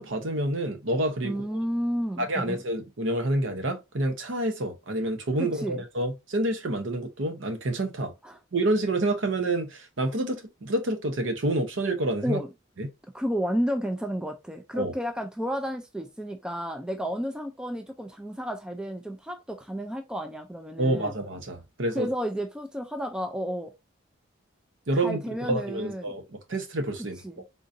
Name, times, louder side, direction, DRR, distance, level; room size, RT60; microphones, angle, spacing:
voice 1, 0.0-1.4 2.2-8.1 8.5-12.4 12.8-12.9 14.7-14.9 20.8-22.1 24.9-25.2 25.5-27.2, right 1 dB, 65° right, 0.8 m, -28 dB
voice 2, 1.2-2.6 5.4-5.8 8.2-8.4 12.2-12.5 13.1-21.1 21.9-23.7 25.0-26.2 27.2-27.4, equal, 5° right, 0.3 m, -31 dB
3.7 x 2.5 x 2.6 m
head